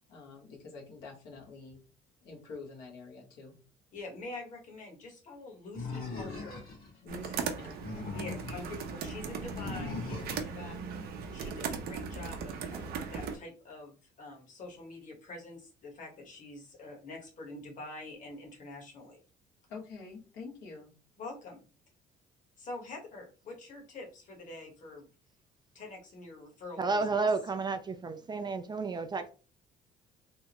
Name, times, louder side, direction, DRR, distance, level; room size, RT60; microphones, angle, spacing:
voice 1, 0.0-1.8 2.2-3.6 7.0-8.2 8.5-8.6 10.4-10.9 19.7-21.0, left 4 dB, 85° left, 1.2 m, -47 dB
voice 2, 3.9-6.6 8.1-10.8 11.3-19.2 21.2-21.6 22.6-25.1 25.7-27.2, left 2 dB, 50° left, 1.3 m, -46 dB
Animal, 5.7-6.9 7.6-8.7 9.5-10.5, left 3 dB, 65° left, 1.7 m, -39 dB
sound 1, 7.1-13.4, right 6 dB, 70° right, 0.6 m, -38 dB
voice 3, 26.8-29.3, right 4 dB, 25° right, 0.4 m, -31 dB
3.5 x 2.1 x 2.9 m
cardioid pair, 110°, 17 cm